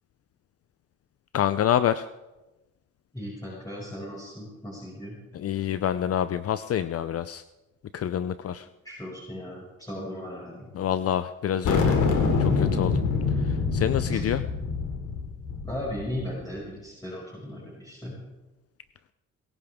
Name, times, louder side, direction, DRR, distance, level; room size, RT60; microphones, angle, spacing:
voice 1, 1.3-2.1 5.3-7.4 7.9-8.7 10.7-12.0 12.4-13.0 13.5-14.4, left 10 dB, 50° left, 13 dB, 0.6 m, -27 dB
voice 2, 3.1-5.2 8.8-10.7 14.1-14.2 15.6-18.1, left 1 dB, 10° left, -6 dB, 6.2 m, -37 dB
sound 1, 11.6-16.3, left 4 dB, 85° left, 2.9 m, -25 dB
22.5 x 15.5 x 3.6 m, 1.1 s
cardioid pair, 90°, 30 cm